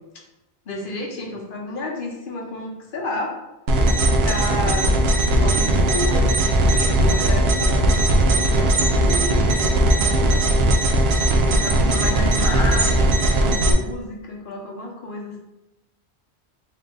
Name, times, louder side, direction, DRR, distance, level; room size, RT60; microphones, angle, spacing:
voice 1, 0.7-3.4 4.0-4.9 5.4-10.5 11.5-15.4, left 2 dB, 55° left, -1 dB, 0.9 m, -31 dB
sound 1, 3.7-13.7, right 1 dB, 70° right, 0.8 m, -18 dB
3.7 x 2.5 x 3.5 m, 0.97 s
omnidirectional pair, 1.1 m